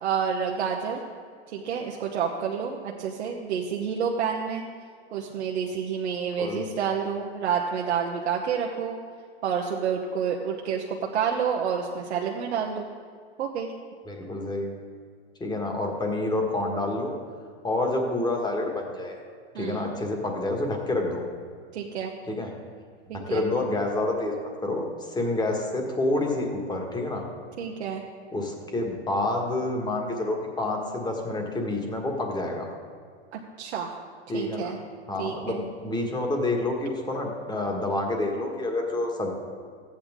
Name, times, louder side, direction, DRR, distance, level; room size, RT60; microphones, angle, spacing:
voice 1, 0.0-1.0 1.5-4.6 5.1-9.0 9.4-12.9 13.4-13.7 19.5-19.9 21.7-22.1 23.1-23.4 27.6-28.0 33.3-33.9 34.3-34.8 35.2-35.6, right 7 dB, 80° right, -1 dB, 1.0 m, -29 dB
voice 2, 14.1-14.7 15.4-17.1 17.6-19.1 19.5-21.2 22.3-22.5 23.1-27.2 28.3-32.7 34.3-34.7 35.1-39.3, left 2 dB, 15° left, 1 dB, 1.6 m, -28 dB
14.0 x 8.8 x 3.7 m, 2.1 s
hypercardioid pair, 120°, 33 cm